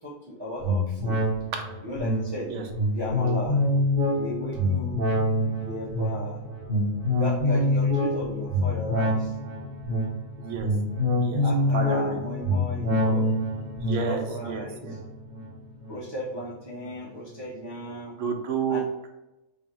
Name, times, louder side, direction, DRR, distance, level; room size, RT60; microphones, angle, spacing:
voice 1, 0.0-1.2 1.8-2.5 2.9-3.6 4.1-5.1 5.6-6.7 7.1-9.3 11.4-13.3 13.9-15.0 15.9-18.2 18.7-18.9, left 1 dB, 25° right, -8 dB, 0.6 m, -36 dB
sound 1, 0.6-16.4 16.8-16.9, left 1 dB, 85° right, 1.4 m, -26 dB
voice 2, 10.4-10.7 11.2-11.4 11.7-12.2 13.8-15.0 18.2-19.1, right 6 dB, 70° right, 3 dB, 1.0 m, -31 dB
3.1 x 2.6 x 4.3 m, 0.94 s
omnidirectional pair, 1.4 m